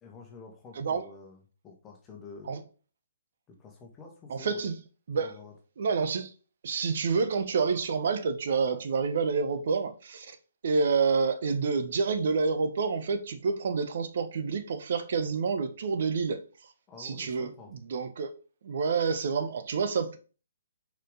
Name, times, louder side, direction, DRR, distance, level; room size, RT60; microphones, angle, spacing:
voice 1, 0.0-2.7 3.5-4.7 5.2-5.5 16.9-17.7, left 4 dB, 15° left, 1.8 m, -48 dB
voice 2, 4.3-4.7 5.1-5.3 5.8-6.3 6.6-10.4 10.6-16.4 17.0-18.3 18.6-20.2, right 5 dB, 50° right, 1.2 m, -28 dB
6.5 x 5.1 x 4.0 m
figure-of-eight pair, 130°, 0 cm